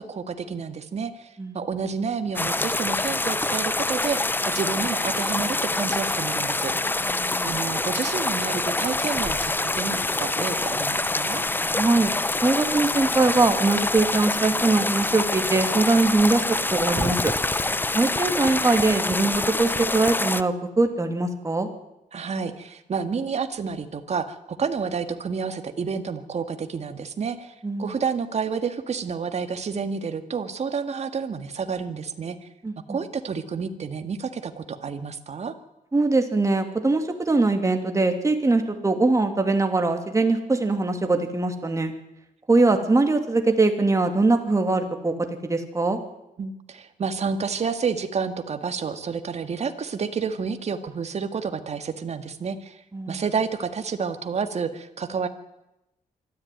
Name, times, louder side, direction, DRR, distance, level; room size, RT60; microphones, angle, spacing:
voice 1, 0.0-1.3 1.5-6.7 7.4-11.4 22.1-27.5 27.8-32.5 32.9-35.5 46.4-52.8 53.1-55.3, right 5 dB, 50° right, 8 dB, 1.9 m, -29 dB
sound 1, 2.3-20.4, left 2 dB, 15° left, 0.7 m, -26 dB
voice 2, 7.1-7.5 11.8-12.1 12.4-16.4 16.7-17.3 17.9-21.7 27.6-27.9 32.6-33.0 35.9-41.9 42.5-45.1 45.4-46.0 52.9-53.2, right 3 dB, 20° right, 5 dB, 2.8 m, -22 dB
24.0 x 13.5 x 9.4 m, 0.91 s
cardioid pair, 110°, 15 cm